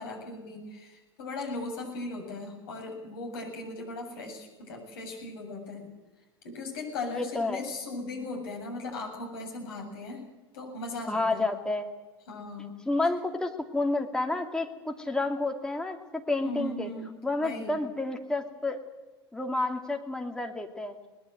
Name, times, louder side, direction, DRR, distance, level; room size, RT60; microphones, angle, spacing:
voice 1, 0.0-5.9 6.4-10.2 10.5-11.5 12.3-12.7 16.4-17.7, left 2 dB, 60° left, 2 dB, 7.7 m, -38 dB
voice 2, 7.1-7.6 11.1-11.9 12.9-16.9 17.2-18.8 19.3-21.0, left 2 dB, 5° left, 3 dB, 2.7 m, -30 dB
21.5 x 20.0 x 7.8 m, 1.2 s
figure-of-eight pair, 80°, 14 cm